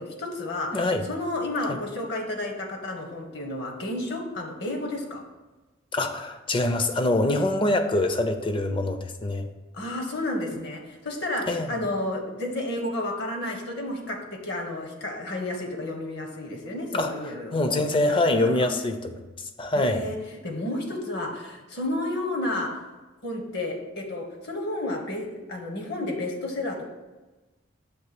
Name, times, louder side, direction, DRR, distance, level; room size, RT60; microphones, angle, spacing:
voice 1, 0.0-5.2 9.7-18.7 19.7-20.2 20.4-22.7 23.2-26.9, left 1 dB, 55° left, 2 dB, 1.1 m, -31 dB
voice 2, 0.7-1.1 1.7-1.8 5.9-9.5 11.5-11.7 16.9-17.1 17.5-19.2 19.6-20.1, left 2 dB, 25° left, 7 dB, 0.5 m, -24 dB
6.6 x 3.1 x 5.9 m, 1.2 s
head